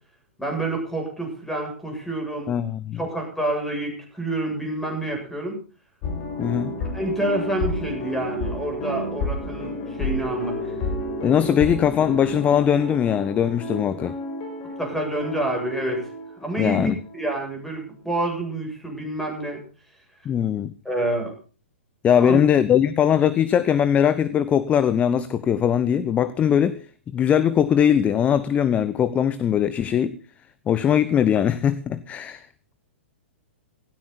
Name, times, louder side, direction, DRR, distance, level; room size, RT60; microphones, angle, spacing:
voice 1, 0.4-2.5 2.9-5.6 6.9-10.7 14.8-16.1 16.4-19.6 20.8-21.3 22.2-22.4, right 1 dB, 5° left, 2 dB, 7.7 m, -28 dB
voice 2, 2.5-3.0 6.4-6.7 11.2-14.1 16.6-17.0 20.2-20.7 22.0-26.8 27.1-30.2 30.7-32.4, left 9 dB, 20° left, 15 dB, 0.9 m, -20 dB
sound 1, 6.0-17.4 17.7-17.8, left 2 dB, 35° left, 6.6 m, -31 dB
17.0 x 16.0 x 4.2 m, 0.38 s
figure-of-eight pair, 110°, 7 cm